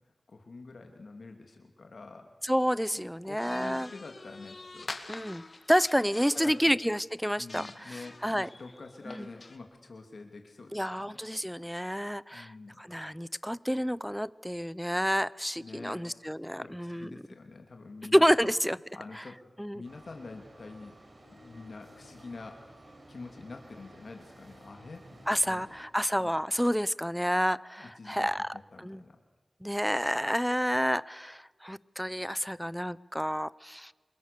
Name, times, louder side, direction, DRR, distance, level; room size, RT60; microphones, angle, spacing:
voice 1, 0.3-2.3 2.9-5.2 6.3-6.8 7.4-11.2 12.3-12.8 15.6-16.0 16.6-18.5 19.0-19.4 19.7-21.0 21.3-25.7 26.2-26.4 27.8-28.3 28.7-29.2, left 3 dB, 75° left, 4 dB, 2.5 m, -47 dB
voice 2, 2.4-3.9 5.1-8.5 9.1-9.3 10.7-17.1 18.1-18.8 19.6-19.8 25.3-29.0 29.6-33.9, equal, ahead, 19 dB, 0.7 m, -29 dB
sound 1, 3.4-6.7 7.1-9.6, left 3 dB, 60° left, 2.0 m, -46 dB
sound 2, 19.8-25.9, right 1 dB, 55° right, 4.5 m, -54 dB
28.0 x 23.5 x 6.8 m, 1.3 s
cardioid pair, 45°, 0 cm